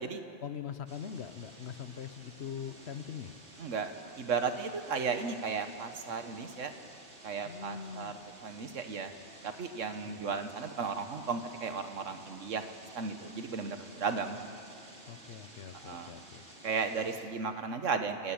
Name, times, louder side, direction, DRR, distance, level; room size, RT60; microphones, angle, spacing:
voice 1, 0.4-3.3 7.4-8.1 10.0-10.4 15.1-16.4, left 8 dB, 60° left, 12 dB, 1.0 m, -42 dB
sound 1, 0.9-17.2, right 2 dB, 65° right, 2.9 m, -53 dB
voice 2, 3.6-6.7 7.2-8.1 8.4-9.1 9.4-12.6 12.9-14.4 15.8-16.1 16.6-18.3, right 5 dB, 80° right, 8 dB, 1.6 m, -35 dB
29.0 x 11.0 x 8.8 m, 2.5 s
omnidirectional pair, 1.3 m